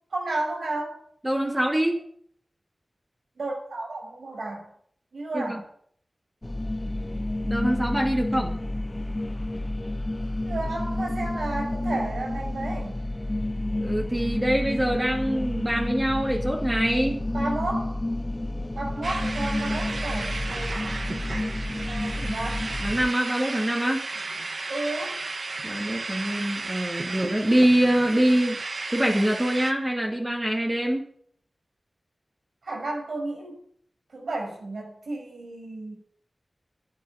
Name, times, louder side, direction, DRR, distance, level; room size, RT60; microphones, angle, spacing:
voice 1, 0.1-1.0 3.4-4.7 5.1-5.6 10.5-13.0 17.3-18.0 18.3-20.7 21.8-22.7 24.7-25.2 32.6-33.6 34.1-35.9, right 2 dB, 90° right, 0 dB, 6.2 m, -32 dB
voice 2, 1.2-2.0 5.3-5.6 7.1-8.6 13.8-17.2 21.7-21.8 22.8-24.1 25.6-28.6 28.9-31.1, right 1 dB, 20° right, 0 dB, 2.5 m, -24 dB
sound 1, 6.4-23.1, left 1 dB, 25° left, 0.5 m, -30 dB
sound 2, 19.0-29.7, right 3 dB, 60° right, 1.3 m, -34 dB
11.0 x 10.5 x 9.3 m, 0.63 s
wide cardioid pair, 65°, 0 cm